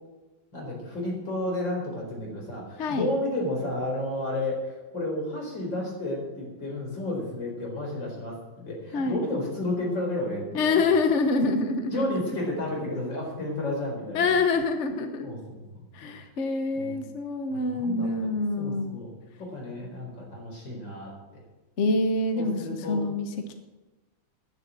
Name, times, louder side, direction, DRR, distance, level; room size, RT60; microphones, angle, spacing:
voice 1, 0.5-8.4 8.6-10.9 11.9-14.4 15.2-16.1 16.8-17.0 17.5-18.1 18.6-19.1 19.4-21.1 22.4-23.1, left 1 dB, 75° left, -1 dB, 5.2 m, -32 dB
voice 2, 2.8-3.1 8.9-9.3 10.5-12.0 14.1-15.3 15.9-19.0 21.8-22.6 22.9-23.5, left 3 dB, 45° left, 6 dB, 1.2 m, -26 dB
11.5 x 10.5 x 7.6 m, 1.1 s
omnidirectional pair, 2.0 m